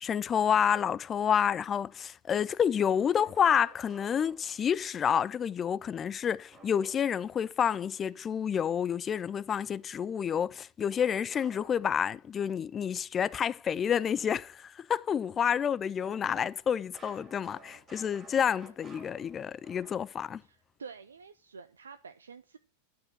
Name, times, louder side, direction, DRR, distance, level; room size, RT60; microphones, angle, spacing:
voice 1, 0.0-20.4, left 8 dB, 25° left, 0.3 m, -29 dB
sound 1, 2.9-4.9 6.5-7.4 11.0-12.4 16.0-20.4, right 2 dB, 15° right, 3.0 m, -55 dB
voice 2, 20.4-22.6, right 5 dB, 70° right, 0.5 m, -48 dB
9.7 x 5.0 x 5.9 m
figure-of-eight pair, 90°, 0 cm